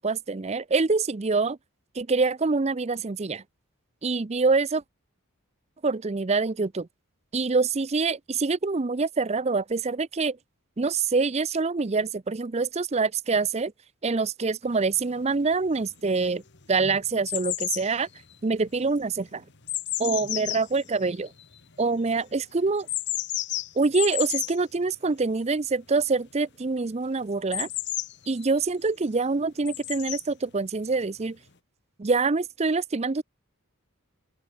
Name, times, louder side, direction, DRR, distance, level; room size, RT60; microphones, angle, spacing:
voice 1, 0.0-1.6 2.0-3.4 4.0-4.8 5.8-6.9 7.3-10.4 10.8-13.7 14.0-16.4 16.7-18.1 18.4-19.4 20.0-21.3 21.8-22.9 23.8-27.7 28.3-31.4 32.0-33.2, right 4 dB, 30° right, 0.5 m, -25 dB
sound 1, 14.9-15.0 15.7-16.3 16.5-21.8 22.8-24.6 27.5-28.6 29.7-30.2 31.2-31.3, left 15 dB, 50° left, 1.7 m, -32 dB
open air
head